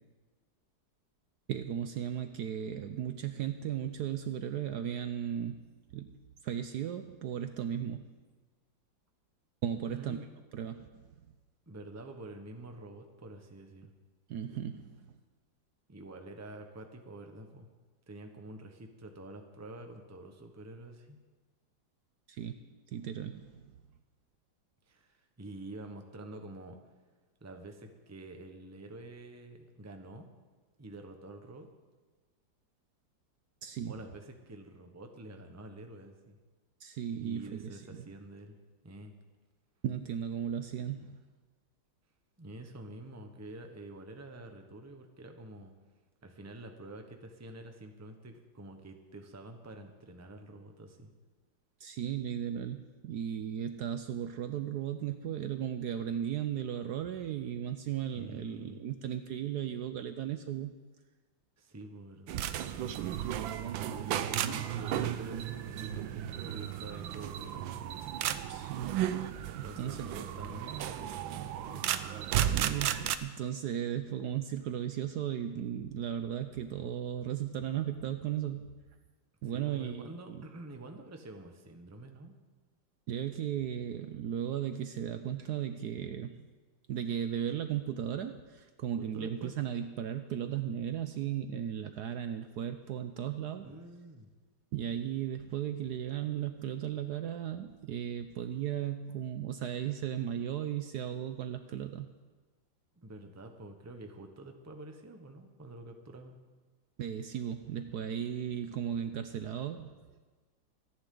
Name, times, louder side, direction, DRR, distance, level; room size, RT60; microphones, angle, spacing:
voice 1, 1.5-5.6 5.9-6.1 6.4-8.0 9.6-10.2 10.5-10.9 14.3-15.1 22.3-22.5 22.9-23.7 33.6-34.0 36.8-38.0 39.8-41.2 51.8-60.7 68.5-69.2 69.5-70.1 72.4-78.7 79.4-80.4 83.1-86.5 86.9-93.7 94.7-102.1 107.0-110.0, right 9 dB, 70° right, 9 dB, 1.1 m, -36 dB
voice 2, 9.9-10.2 11.7-13.9 15.9-17.7 18.1-21.2 24.9-26.8 27.4-30.3 30.8-31.7 33.8-36.4 37.2-38.6 38.8-39.1 42.4-45.7 46.2-51.1 58.1-58.8 61.6-62.5 63.9-67.9 69.6-71.9 79.4-82.3 88.9-89.5 93.6-94.3 103.0-106.4, right 2 dB, 10° right, 5 dB, 0.8 m, -47 dB
sound 1, 62.3-73.2, right 11 dB, 90° right, 1.4 m, -34 dB
25.5 x 10.5 x 3.8 m, 1.3 s
omnidirectional pair, 2.0 m